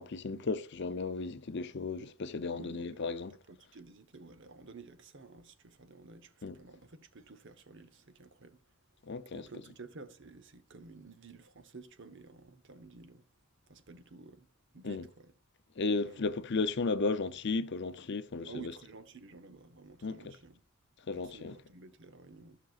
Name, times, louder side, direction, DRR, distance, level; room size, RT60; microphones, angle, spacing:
voice 1, 0.0-3.3 6.4-6.6 9.1-9.5 14.8-15.1 15.8-18.7 20.0-20.4 21.1-21.6, left 3 dB, 50° left, 0.6 m, -34 dB
voice 2, 2.5-3.1 3.5-8.6 9.3-13.2 13.7-14.5 14.7-15.3 16.0-16.3 18.5-20.6 21.1-22.6, right 3 dB, 55° right, 0.8 m, -52 dB
14.5 x 5.9 x 2.4 m
head